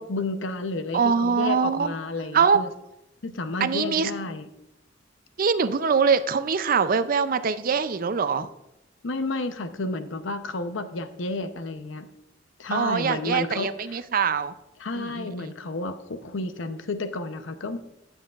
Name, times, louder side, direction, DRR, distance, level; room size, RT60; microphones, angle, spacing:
voice 1, 0.0-2.7 3.2-4.5 9.0-12.1 12.6-13.7 14.8-17.8, left 2 dB, 80° left, 9 dB, 0.7 m, -31 dB
voice 2, 0.9-2.0 2.3-2.6 3.6-4.1 5.4-8.5 12.7-14.5 14.9-15.5, right 6 dB, 45° right, 12 dB, 0.5 m, -23 dB
17.0 x 6.4 x 2.4 m, 0.91 s
head